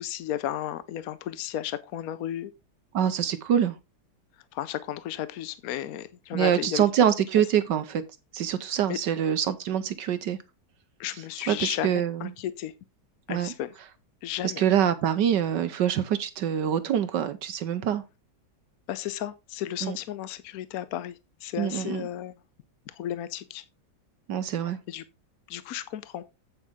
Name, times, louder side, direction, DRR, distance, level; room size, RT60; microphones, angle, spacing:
voice 1, 0.0-2.5 4.5-6.8 8.9-9.0 11.0-12.7 13.3-13.7 14.2-14.7 18.9-22.3 22.9-23.6 24.9-25.0 25.5-26.2, left 12 dB, 70° left, 0.9 m, -34 dB
voice 2, 2.9-3.8 6.3-8.0 8.3-10.4 11.5-12.3 13.3-13.5 14.4-18.0 19.8-20.0 21.6-22.1 24.3-24.8, right 9 dB, 70° right, 1.4 m, -25 dB
8.3 x 8.1 x 3.5 m
omnidirectional pair, 2.1 m